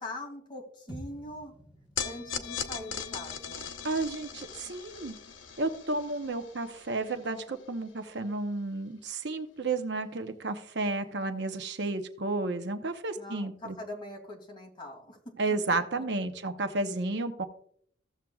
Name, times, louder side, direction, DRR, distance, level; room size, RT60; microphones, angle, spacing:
voice 1, 0.0-1.5 2.0-3.7 13.2-15.2 15.9-16.0, left 1 dB, 25° left, -1 dB, 2.6 m, -42 dB
sound 1, 0.9-5.2, equal, 5° right, 1.4 m, -51 dB
sound 2, 2.0-8.4, left 7 dB, 80° left, 0.9 m, -40 dB
voice 2, 3.8-5.2 5.6-13.8 15.4-17.5, right 3 dB, 60° right, 7 dB, 0.8 m, -32 dB
15.0 x 7.4 x 2.3 m, 0.63 s
head